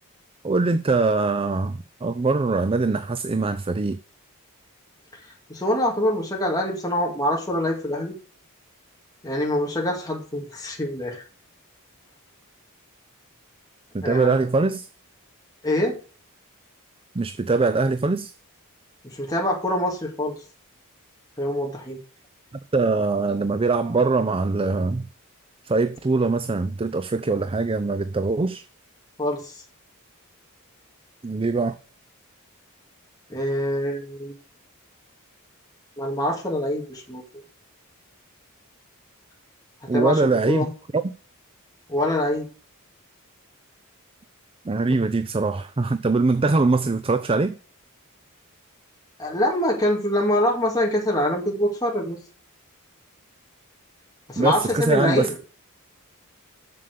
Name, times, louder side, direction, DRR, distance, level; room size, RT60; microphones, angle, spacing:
voice 1, 0.4-4.0 13.9-14.9 17.1-18.3 22.7-25.1 25.6-28.6 31.2-31.8 39.9-40.7 44.6-47.6 54.4-55.3, right 3 dB, 25° right, 0.5 m, -22 dB
voice 2, 5.5-8.1 9.2-11.2 14.0-14.4 15.6-16.0 19.0-20.3 21.4-22.0 29.2-29.6 33.3-34.3 36.0-37.2 39.9-40.7 41.9-42.5 49.2-52.2 54.3-55.4, left 1 dB, 15° left, 2.2 m, -24 dB
7.6 x 7.1 x 6.7 m
head